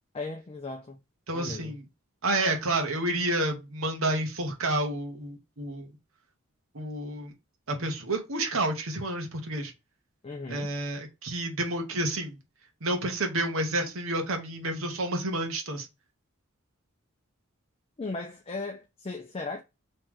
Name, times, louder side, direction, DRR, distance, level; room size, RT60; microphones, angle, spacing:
voice 1, 0.1-1.0 1.3-1.7 10.2-10.7 18.0-19.6, left 3 dB, 30° left, 0.5 m, -37 dB
voice 2, 1.3-1.8 2.2-5.9 6.7-7.3 7.7-9.7 10.5-12.4 12.8-15.9, right 2 dB, 75° right, 1.1 m, -30 dB
3.2 x 3.1 x 3.5 m
head